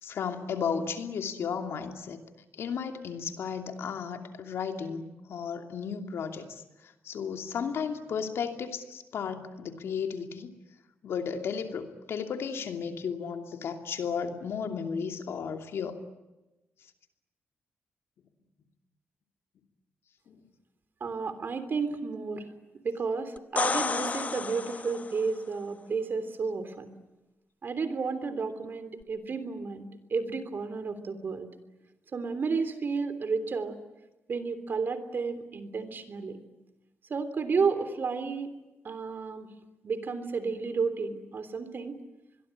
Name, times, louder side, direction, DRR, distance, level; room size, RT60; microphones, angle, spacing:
voice 1, 0.0-2.2 2.5-10.5 11.0-16.0 20.3-20.4, left 6 dB, 80° left, 5 dB, 2.7 m, -34 dB
voice 2, 21.0-22.5 22.8-26.9 27.6-31.5 32.1-33.8 34.3-36.4 37.1-38.5 38.8-39.5 39.8-42.0, right 4 dB, 55° right, 11 dB, 3.3 m, -32 dB
sound 1, 23.4-25.3 29.0-29.1, left 4 dB, 35° left, 1.0 m, -31 dB
25.5 x 22.0 x 9.9 m, 1.0 s
cardioid pair, 85°, 4 cm